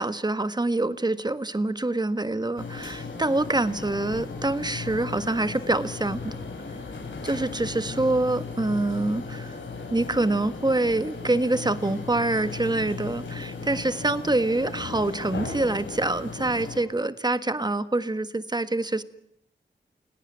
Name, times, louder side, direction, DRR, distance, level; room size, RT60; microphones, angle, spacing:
voice 1, 0.0-6.4 7.2-9.5 9.9-19.0, right 2 dB, 20° right, 12 dB, 1.5 m, -26 dB
sound 1, 2.6-16.8, left 4 dB, 90° left, 6.1 m, -36 dB
29.5 x 17.5 x 9.3 m, 0.75 s
wide cardioid pair, 65°, 19 cm